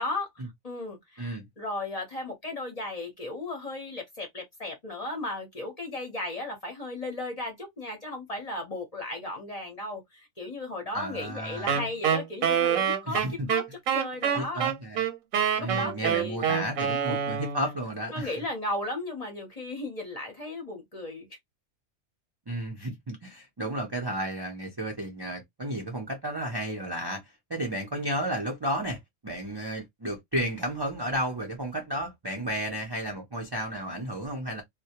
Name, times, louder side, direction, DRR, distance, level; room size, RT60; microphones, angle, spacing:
voice 1, 0.0-13.6 13.9-14.6 15.5-16.4 17.1-17.3 18.1-21.3, left 2 dB, 35° left, 0.7 m, -35 dB
voice 2, 10.9-11.8 13.1-13.5 14.4-15.0 15.6-18.3 22.5-34.6, right 1 dB, 35° right, 0.4 m, -33 dB
Wind instrument woodwind instrument, 11.7-17.7, right 8 dB, 85° right, 1.1 m, -26 dB
2.2 x 2.1 x 2.7 m
omnidirectional pair, 1.4 m